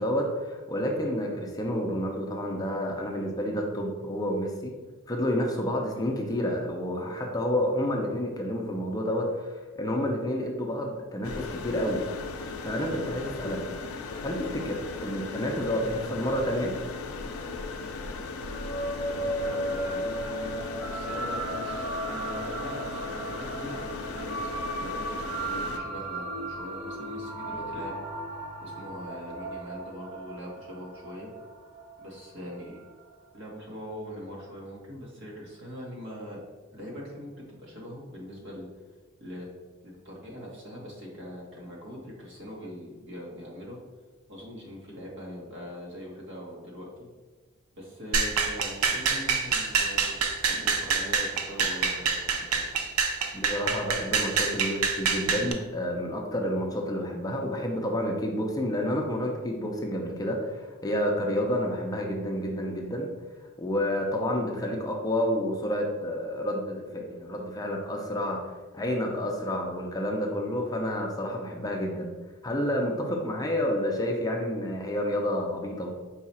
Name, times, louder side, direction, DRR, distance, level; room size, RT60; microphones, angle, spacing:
voice 1, 0.0-4.7 5.1-12.0 12.6-13.6 14.2-16.7 53.3-63.1 63.6-68.4 68.7-72.1 72.4-76.0, equal, 15° left, 0 dB, 0.5 m, -29 dB
sound 1, 11.2-25.8, left 4 dB, 70° left, 0.5 m, -37 dB
sound 2, 18.4-33.1, right 1 dB, 25° right, 1.0 m, -35 dB
voice 2, 19.0-28.0 28.6-31.3 32.0-32.8 33.3-36.4 36.7-38.7 39.2-39.5 39.8-43.8 44.3-46.9 47.7-52.6, equal, 60° right, -3 dB, 1.2 m, -42 dB
sound 3, 48.1-55.5, right 5 dB, 80° right, 0.5 m, -26 dB
4.7 x 2.4 x 4.1 m, 1.3 s
head